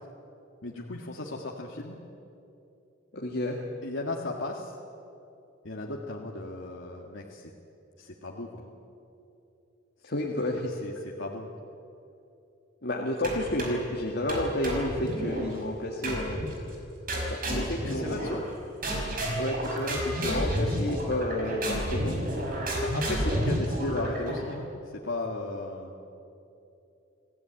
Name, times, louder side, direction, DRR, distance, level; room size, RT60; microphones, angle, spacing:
voice 1, 0.6-2.0 3.8-4.8 5.6-7.5 8.0-8.7 10.8-11.5 17.8-18.4 22.8-25.9, left 2 dB, 75° left, -1 dB, 1.9 m, -36 dB
voice 2, 3.1-3.6 10.0-10.7 12.8-16.4 17.3-18.4 19.1-22.2, left 1 dB, 55° left, -1 dB, 2.1 m, -31 dB
sound 1, 13.2-13.9 14.3-15.5 16.0-16.6 17.1-18.5 18.8-24.5, equal, 45° right, 5.6 m, -30 dB
27.5 x 16.5 x 9.1 m, 2.8 s
head